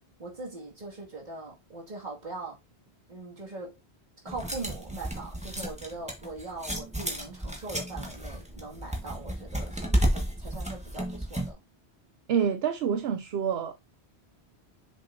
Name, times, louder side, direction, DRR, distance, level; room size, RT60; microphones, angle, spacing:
voice 1, 0.2-2.6 3.1-3.8 4.2-11.6, right 3 dB, 45° right, 2.4 m, -41 dB
sound 1, 4.3-11.5, right 1 dB, 5° right, 1.6 m, -32 dB
voice 2, 12.3-13.8, right 7 dB, 75° right, 0.8 m, -27 dB
7.0 x 5.6 x 2.7 m
omnidirectional pair, 1.1 m